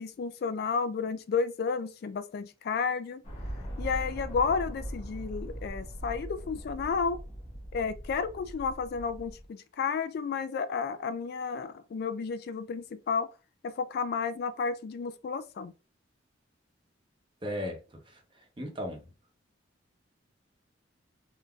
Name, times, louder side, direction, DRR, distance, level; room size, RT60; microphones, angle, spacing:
voice 1, 0.0-3.2 3.8-7.2 7.7-13.3 13.6-15.7, left 5 dB, 55° left, 0.3 m, -32 dB
sound 1, 3.2-9.5, equal, 35° left, 1.2 m, -40 dB
voice 2, 17.4-17.8 18.1-19.0, equal, 25° right, 0.9 m, -36 dB
3.6 x 2.6 x 2.3 m
head